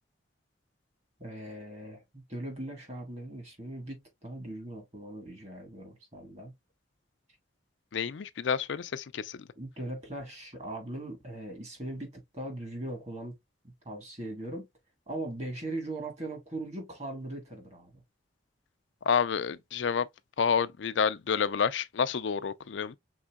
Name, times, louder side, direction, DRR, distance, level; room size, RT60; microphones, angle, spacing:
voice 1, 1.2-6.6 9.6-13.3 13.6-14.7 15.1-18.0, right 1 dB, 35° right, 1.7 m, -40 dB
voice 2, 7.9-9.4 19.1-20.1 20.4-23.0, left 6 dB, 80° left, 0.4 m, -29 dB
5.4 x 3.7 x 2.3 m
head